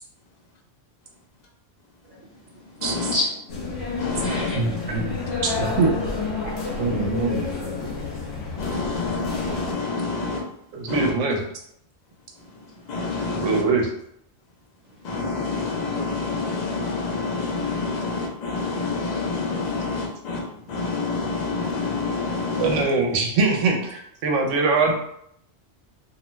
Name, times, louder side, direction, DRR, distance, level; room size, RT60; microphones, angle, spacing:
voice 1, 2.0-4.8 5.0-5.2 6.4-7.1 12.4-13.6 14.8-15.9 20.5-20.8, left 1 dB, 55° right, -8 dB, 1.1 m, -37 dB
voice 2, 2.8-3.1 3.7-4.5 8.5-10.5 10.7-11.1 12.4-13.7 15.0-22.9, left 4 dB, 55° left, 0 dB, 0.5 m, -28 dB
sound 1, 3.5-9.7, left 4 dB, 75° left, 1.1 m, -30 dB
voice 3, 4.5-5.2 5.4-5.9 6.8-7.5 10.7-11.4 13.4-13.9 22.6-24.9, right 4 dB, 80° right, 1 dB, 1.0 m, -22 dB
2.6 x 2.2 x 3.0 m, 0.72 s
omnidirectional pair, 1.3 m